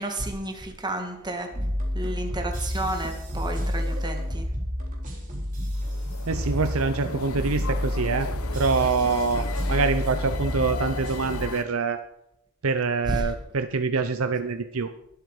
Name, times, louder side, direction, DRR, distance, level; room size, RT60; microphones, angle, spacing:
voice 1, 0.0-1.5 1.9-4.5 13.1-13.3, right 1 dB, 20° right, 4 dB, 1.9 m, -31 dB
sound 1, 1.5-11.5, equal, 40° right, 3.7 m, -30 dB
sound 2, 5.7-11.6, left 4 dB, 85° left, 1.0 m, -37 dB
voice 2, 6.3-8.3 8.5-12.0 12.6-14.9, right 4 dB, 75° right, 8 dB, 0.7 m, -25 dB
21.0 x 8.1 x 4.9 m, 0.81 s
head